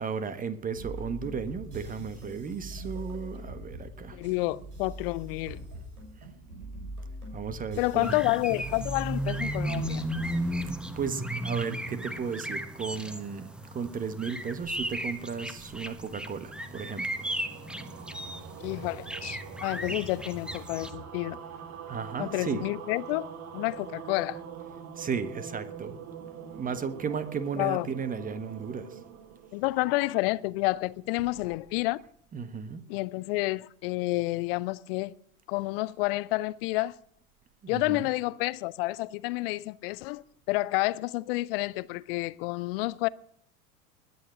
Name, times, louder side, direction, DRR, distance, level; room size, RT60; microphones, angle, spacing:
voice 1, 0.0-4.2 7.3-8.2 10.4-17.2 19.9-20.0 21.9-22.6 25.0-26.0 26.5-29.0 31.2-31.3 32.3-32.8 37.6-38.1, right 6 dB, 20° right, 1.4 m, -35 dB
sound 1, 0.7-10.7, equal, 70° right, 7.4 m, -42 dB
voice 2, 4.1-5.6 7.8-10.0 18.6-21.4 22.2-23.3 23.5-24.4 27.6-27.9 29.5-32.0 32.9-35.1 35.5-37.0 37.7-43.1, left 21 dB, 40° left, 0.6 m, -29 dB
sound 2, 8.0-20.9, right 1 dB, ahead, 1.1 m, -35 dB
sound 3, 15.9-30.3, right 8 dB, 35° right, 1.9 m, -44 dB
20.5 x 9.9 x 6.5 m
figure-of-eight pair, 85°, 45 cm